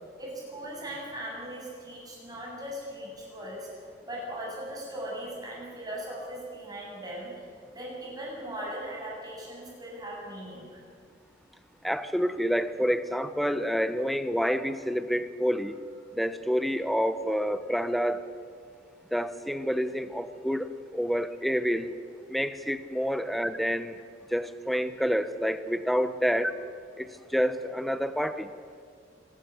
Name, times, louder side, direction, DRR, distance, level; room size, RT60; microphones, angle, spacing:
voice 1, 0.2-3.7 4.1-7.4 7.7-10.8, right 1 dB, 20° right, -4 dB, 7.6 m, -39 dB
voice 2, 11.8-15.8 16.2-18.2 19.1-21.9 22.3-24.0 24.3-26.5 27.0-28.5, equal, ahead, 11 dB, 0.9 m, -28 dB
25.5 x 13.0 x 9.3 m, 2.1 s
head